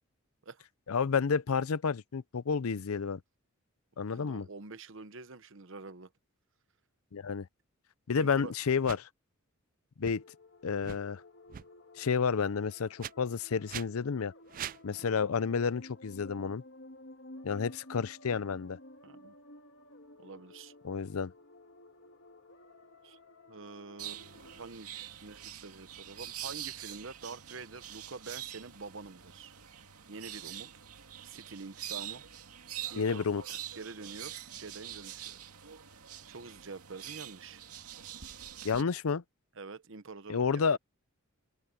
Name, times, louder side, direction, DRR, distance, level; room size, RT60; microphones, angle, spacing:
voice 1, 0.9-3.2 4.0-4.5 7.1-7.5 8.1-9.1 10.0-10.2 10.6-11.2 12.0-14.3 14.8-16.6 17.4-18.8 20.8-21.3 33.0-33.4 38.6-39.2 40.3-40.8, left 5 dB, 75° left, 0.5 m, -30 dB
voice 2, 4.1-6.1 8.1-8.5 15.0-15.1 19.0-19.3 20.2-20.7 23.0-23.2 23.5-29.5 30.1-30.7 31.2-32.2 32.9-33.4 33.8-35.4 36.2-37.6 39.6-40.8, right 4 dB, 55° right, 1.0 m, -47 dB
sound 1, 8.8-9.0 10.0-10.1 10.7-11.0 11.5-11.7 13.0-13.1 13.7-13.9 14.5-14.8, right 10 dB, 40° right, 0.3 m, -41 dB
sound 2, 10.1-24.7, left 1 dB, 55° left, 2.0 m, -54 dB
sound 3, 24.0-38.8, right 11 dB, 90° right, 2.3 m, -45 dB
open air
head